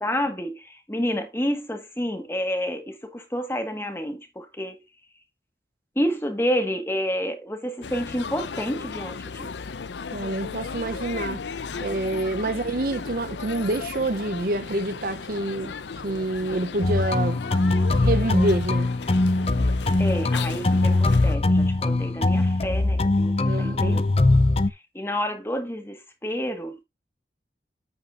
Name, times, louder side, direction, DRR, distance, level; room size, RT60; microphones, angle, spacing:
voice 1, 0.0-4.8 5.9-9.5 12.4-12.5 20.0-24.0 24.7-26.8, equal, 15° left, 1.5 m, -29 dB
sound 1, 7.8-21.4, left 5 dB, 90° left, 0.6 m, -35 dB
voice 2, 10.1-11.4 11.8-15.7 16.0-17.4 18.0-18.9 23.4-24.0, right 2 dB, 55° right, 0.7 m, -27 dB
sound 2, 16.8-24.7, left 2 dB, 35° left, 0.5 m, -21 dB
9.1 x 9.1 x 2.5 m
head